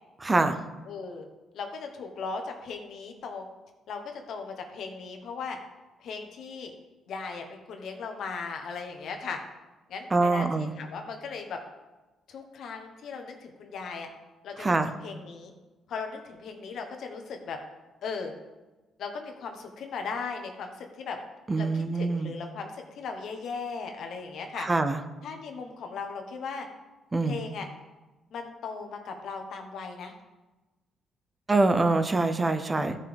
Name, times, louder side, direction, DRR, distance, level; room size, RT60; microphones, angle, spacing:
voice 1, 0.2-0.6 10.1-10.7 14.6-14.9 21.5-22.3 24.6-25.0 27.1-27.4 31.5-33.0, right 3 dB, 25° right, 9 dB, 0.7 m, -24 dB
voice 2, 0.9-1.3 1.5-3.4 3.9-5.6 6.0-6.7 7.1-9.4 9.9-11.6 12.3-14.1 14.4-14.8 15.0-15.5 15.9-17.6 18.0-18.3 19.0-21.2 21.6-24.7 25.2-26.7 27.2-27.7 28.3-30.1, left 5 dB, 70° left, 4 dB, 1.3 m, -37 dB
13.5 x 5.5 x 3.5 m, 1.2 s
cardioid pair, 90°, 0 cm